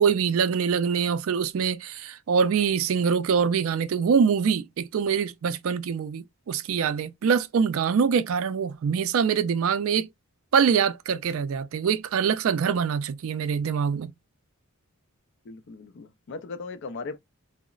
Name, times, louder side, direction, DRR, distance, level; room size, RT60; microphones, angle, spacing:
voice 1, 0.0-10.1 10.5-14.1, right 6 dB, 65° right, 0.3 m, -24 dB
voice 2, 15.4-17.2, left 4 dB, 50° left, 0.4 m, -38 dB
3.8 x 2.0 x 2.2 m
head